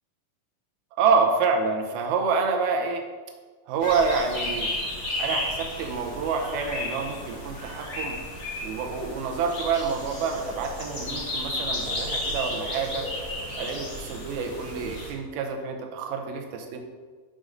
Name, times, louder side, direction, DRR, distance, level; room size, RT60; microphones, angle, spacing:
voice 1, 1.0-3.0 3.7-4.7 5.2-8.2 8.6-13.1 13.5-16.8, right 5 dB, 90° right, 3 dB, 2.6 m, -27 dB
sound 1, 3.8-15.1, left 1 dB, 35° left, 1.3 m, -33 dB
6.2 x 5.3 x 5.0 m, 1.5 s
omnidirectional pair, 4.2 m